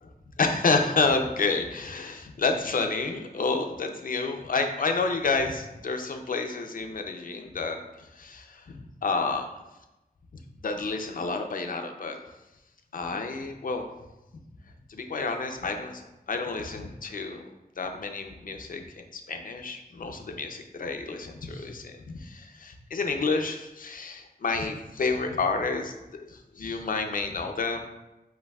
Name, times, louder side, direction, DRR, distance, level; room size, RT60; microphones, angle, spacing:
voice 1, 0.4-9.5 10.6-12.2 12.9-13.9 14.9-16.0 16.3-17.5 17.8-25.9 26.3-27.8, left 4 dB, 60° left, 5 dB, 0.5 m, -29 dB
7.7 x 2.7 x 2.3 m, 0.98 s
wide cardioid pair, 95°, 16 cm